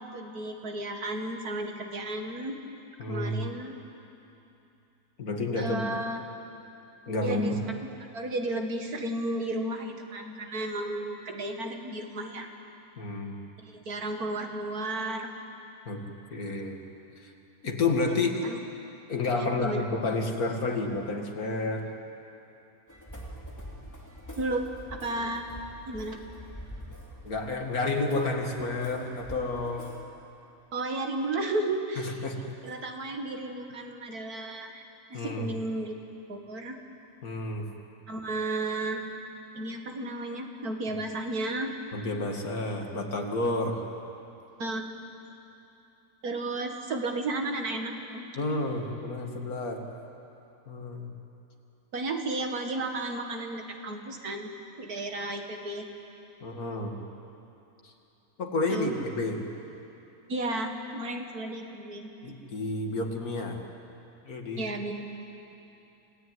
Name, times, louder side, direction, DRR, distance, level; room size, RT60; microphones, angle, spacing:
voice 1, 0.0-2.6 3.1-3.8 5.5-6.2 7.2-7.5 8.1-12.5 13.6-15.3 18.4-18.6 19.4-19.8 24.3-24.6 24.9-25.5 25.9-26.2 30.7-32.2 32.6-34.9 35.1-35.9 36.3-36.8 38.1-39.0 39.5-41.7 44.6-44.9 46.2-48.3 51.9-54.5 54.8-55.9 58.7-58.9 60.3-62.1 64.6-64.9, right 2 dB, 80° right, 3 dB, 2.5 m, -33 dB
voice 2, 3.0-3.4 5.2-5.8 7.1-7.6 13.0-13.4 15.9-16.0 16.3-16.8 17.2-17.3 17.6-18.4 19.1-21.9 27.2-29.9 32.0-32.4 35.1-35.5 37.2-37.7 41.9-43.8 48.4-49.8 50.7-51.1 56.4-57.0 57.8-57.9 58.4-59.4 62.2-63.6 64.2-64.7, left 2 dB, 75° left, 3 dB, 2.5 m, -30 dB
sound 1, 22.9-30.0, equal, 10° left, 2.8 m, -45 dB
27.5 x 17.5 x 9.5 m, 2.9 s
omnidirectional pair, 1.6 m